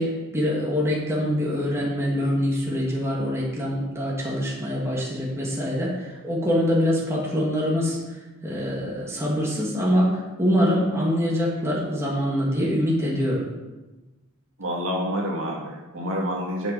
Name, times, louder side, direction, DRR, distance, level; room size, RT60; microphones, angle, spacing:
voice 1, 0.0-8.0 8.4-13.5, equal, 10° right, -5 dB, 2.7 m, -24 dB
voice 2, 14.6-16.7, equal, 65° right, -2 dB, 2.2 m, -28 dB
11.5 x 7.3 x 5.6 m, 1.1 s
head